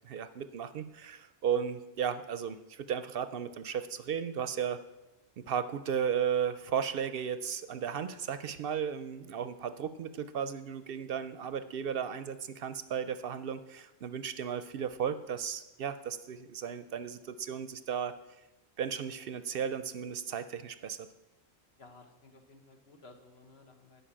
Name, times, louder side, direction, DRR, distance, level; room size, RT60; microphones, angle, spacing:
voice 1, 0.0-4.8 5.5-18.2 18.8-21.1, right 8 dB, 65° right, 12 dB, 0.7 m, -35 dB
voice 2, 21.8-24.0, left 3 dB, 65° left, 5 dB, 1.5 m, -56 dB
11.0 x 5.3 x 8.6 m, 1.0 s
omnidirectional pair, 1.1 m